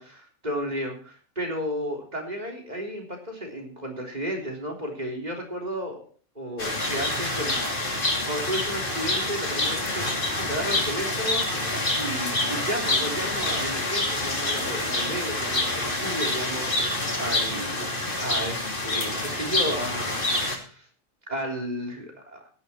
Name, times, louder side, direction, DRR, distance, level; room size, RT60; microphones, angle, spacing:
voice 1, 0.0-6.0 6.4-7.6 7.9-16.9 17.2-20.9 21.3-22.4, equal, 30° right, 1 dB, 3.7 m, -33 dB
sound 1, 6.6-20.6, left 2 dB, 40° left, 2.9 m, -27 dB
16.0 x 11.0 x 4.4 m, 0.40 s
omnidirectional pair, 1.4 m